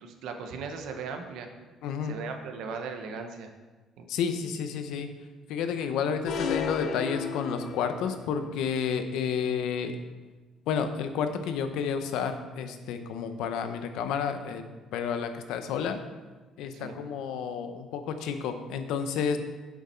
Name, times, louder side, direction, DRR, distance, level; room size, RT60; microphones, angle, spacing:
voice 1, 0.0-1.5 2.0-3.5 4.0-4.1 16.7-17.0, right 5 dB, 70° right, 5 dB, 1.0 m, -38 dB
voice 2, 1.8-2.2 4.1-5.1 5.5-10.0 10.7-14.7 14.9-16.0 16.6-19.4, left 7 dB, 85° left, 8 dB, 0.8 m, -31 dB
sound 1, 6.2-8.2, left 6 dB, 45° left, 0.5 m, -32 dB
7.6 x 7.2 x 4.4 m, 1.2 s
cardioid pair, 170°, 0 cm